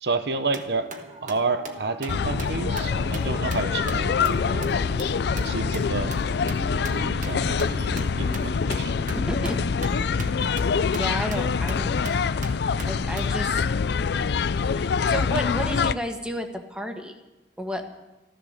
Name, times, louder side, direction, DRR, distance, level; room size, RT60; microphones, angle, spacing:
voice 1, 0.0-0.9 1.2-4.8 5.4-6.1 6.8-9.0, right 3 dB, 70° right, 10 dB, 0.9 m, -30 dB
sound 1, 0.5-4.3 4.6-4.7 5.0-5.1 5.4-13.3, right 3 dB, 50° right, 1.4 m, -42 dB
sound 2, 1.1-12.8, equal, 30° right, 2.4 m, -40 dB
sound 3, 2.1-15.9, left 5 dB, 65° left, 0.4 m, -25 dB
voice 2, 9.1-9.6 11.0-12.4 12.9-13.6 14.7-17.2 17.6-17.9, equal, 5° right, 4 dB, 1.5 m, -32 dB
14.5 x 14.0 x 6.6 m, 1.1 s
head